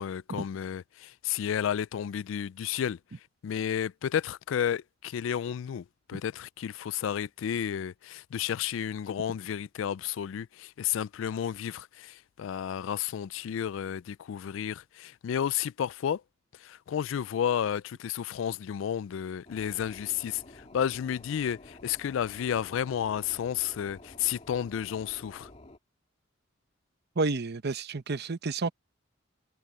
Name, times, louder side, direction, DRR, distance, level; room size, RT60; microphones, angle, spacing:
voice 1, 0.0-3.0 3.4-16.2 16.6-25.5, left 9 dB, 70° left, 0.3 m, -32 dB
sound 1, 19.4-25.8, left 1 dB, 35° left, 2.4 m, -51 dB
voice 2, 27.2-28.7, right 3 dB, 55° right, 0.8 m, -30 dB
head